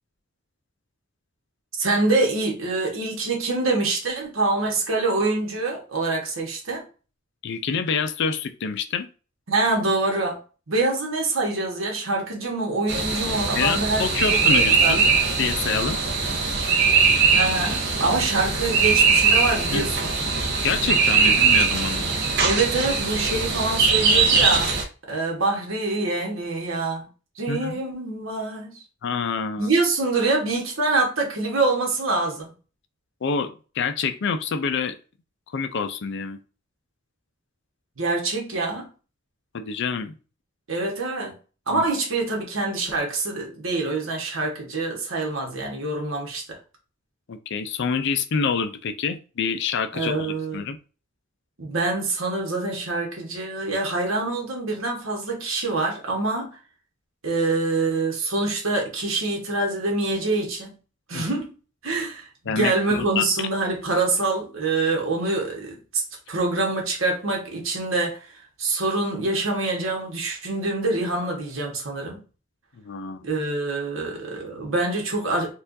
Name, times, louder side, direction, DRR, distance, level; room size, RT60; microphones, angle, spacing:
voice 1, 1.8-6.8 9.5-10.4 10.7-14.9 17.3-20.1 21.2-21.3 22.4-24.7 25.1-27.0 27.4-28.8 29.6-32.5 38.0-38.9 40.7-41.4 41.7-46.6 49.9-50.7 51.6-56.6 57.2-60.7 61.1-61.5 61.8-66.0 66.3-68.2 68.6-72.2 73.2-75.5, right 3 dB, 75° right, 1.3 m, -25 dB
voice 2, 7.4-9.1 13.6-15.1 15.4-16.0 19.7-19.9 20.6-22.1 27.5-27.8 29.0-29.7 33.2-35.0 35.5-36.4 39.5-40.1 41.7-41.9 47.3-50.8 61.1-61.3 62.5-63.3 72.8-73.3, left 5 dB, 60° left, 0.4 m, -27 dB
sound 1, 12.9-24.8, right 5 dB, 55° right, 0.7 m, -21 dB
4.3 x 2.4 x 2.6 m
head